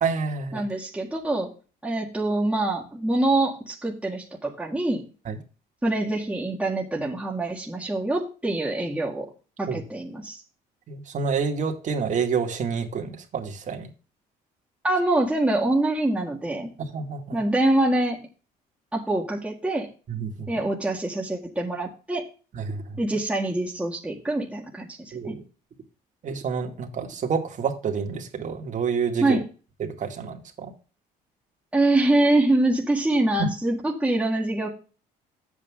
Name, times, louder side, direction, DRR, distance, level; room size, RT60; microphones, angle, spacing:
voice 1, 0.0-0.6 5.3-5.4 9.7-9.8 10.9-13.9 16.8-17.4 20.1-20.5 22.5-23.0 25.1-25.4 26.2-29.4 29.8-30.7, right 6 dB, 45° right, 4 dB, 2.2 m, -28 dB
voice 2, 0.5-1.5 1.8-5.1 5.8-9.3 9.6-10.4 14.8-16.7 17.3-18.2 18.9-19.9 20.5-22.2 23.0-25.3 29.2-29.4 31.7-34.7, right 2 dB, 5° right, -3 dB, 1.8 m, -25 dB
9.5 x 8.2 x 3.7 m, 0.34 s
cardioid pair, 110°, 17 cm